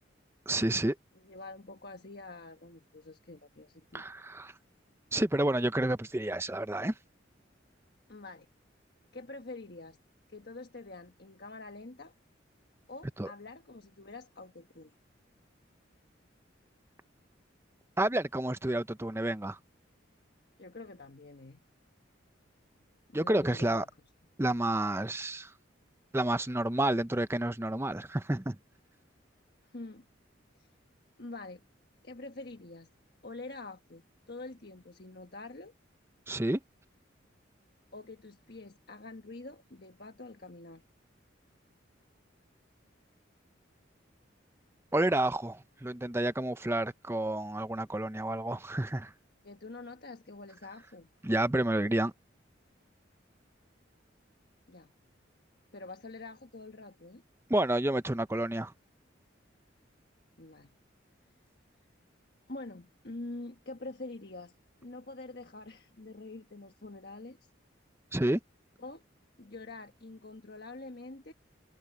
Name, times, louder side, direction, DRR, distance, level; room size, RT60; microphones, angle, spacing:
voice 1, 0.5-1.0 3.9-4.5 5.1-6.9 13.2-13.3 18.0-19.6 23.1-23.9 24.4-25.5 26.1-28.6 36.3-36.6 44.9-49.1 51.2-52.1 57.5-58.7 68.1-68.4, right 1 dB, 15° right, 0.6 m, -30 dB
voice 2, 1.1-4.0 8.1-8.5 9.1-10.0 10.3-12.1 12.9-15.0 20.6-21.6 23.1-23.9 29.6-30.0 30.6-30.8 31.2-31.6 32.0-32.9 33.2-35.7 37.9-40.8 49.4-51.1 54.7-54.9 55.7-57.2 60.4-60.8 62.5-64.5 64.8-67.5 68.8-69.0 69.4-71.3, left 2 dB, 55° left, 1.4 m, -46 dB
head